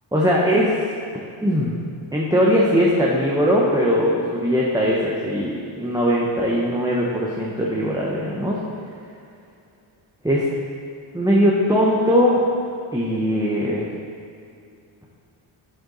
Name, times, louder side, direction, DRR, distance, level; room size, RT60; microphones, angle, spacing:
voice 1, 0.1-1.0 1.4-1.7 2.1-8.6 10.2-10.5 11.1-12.6 12.9-13.9, equal, 10° right, -4 dB, 1.1 m, -20 dB
8.1 x 6.9 x 4.1 m, 2.4 s
cardioid pair, 55°, 50 cm